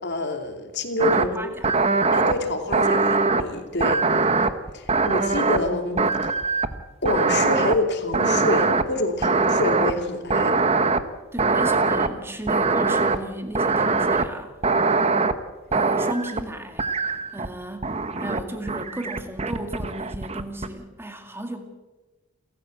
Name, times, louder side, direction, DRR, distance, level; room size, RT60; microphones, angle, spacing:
voice 1, 0.0-1.5 2.1-4.0 4.7-6.1 7.0-10.6, left 1 dB, 50° left, 5 dB, 2.8 m, -27 dB
sound 1, 1.0-1.3 1.6-2.3 2.7-3.4 3.8-5.7 6.0-6.8 7.1-7.8 8.1-8.8 9.2-9.9 10.3-11.0 11.4-12.1 12.5-13.2 13.5-14.3 14.6-15.3 15.7-16.4 16.8-17.5 17.8-18.4 18.7-20.7, right 3 dB, 30° right, 1.0 m, -22 dB
voice 2, 1.2-1.7 11.3-14.8 15.7-17.0 17.3-21.6, right 1 dB, 10° right, 6 dB, 2.1 m, -34 dB
28.5 x 14.0 x 7.8 m, 1.2 s
head